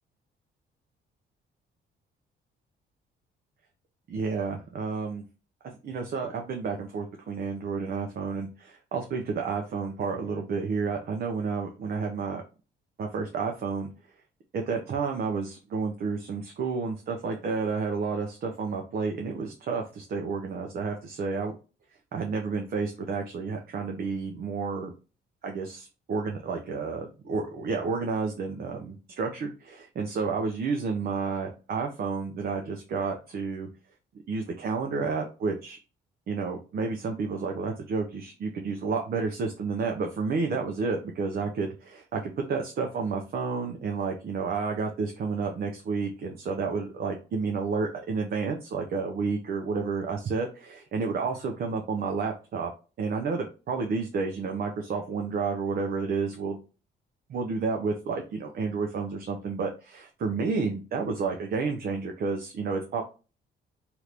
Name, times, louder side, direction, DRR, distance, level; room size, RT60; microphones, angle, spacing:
voice 1, 4.1-5.2 5.6-12.4 13.0-13.9 14.5-21.6 22.1-24.9 25.4-33.7 34.3-35.8 36.3-52.7 53.0-56.6 57.3-63.0, right 4 dB, 50° right, 3 dB, 0.5 m, -30 dB
2.9 x 2.5 x 3.3 m, 0.34 s
cardioid pair, 90°, 20 cm